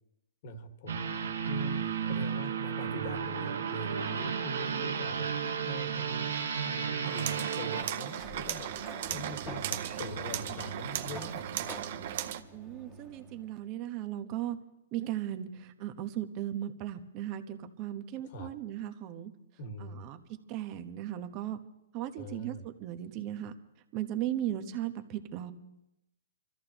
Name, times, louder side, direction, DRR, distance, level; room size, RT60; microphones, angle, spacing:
voice 1, 0.4-1.1 1.5-5.3 5.7-6.3 6.6-8.7 9.1-11.7 18.2-18.5 19.6-20.1 22.2-22.7, equal, 45° left, 6 dB, 1.8 m, -42 dB
sound 1, 0.9-7.8, right 7 dB, 80° right, 1.6 m, -33 dB
sound 2, 7.0-12.4, right 12 dB, 50° right, 0.7 m, -37 dB
Sliding door, 8.1-13.7, right 1 dB, 10° left, 1.5 m, -46 dB
voice 2, 12.5-14.6 14.9-19.3 19.8-21.6 21.9-23.5 23.9-25.5, right 12 dB, 30° right, 8 dB, 1.1 m, -37 dB
27.5 x 14.0 x 3.0 m, 0.87 s
hypercardioid pair, 145°, 0 cm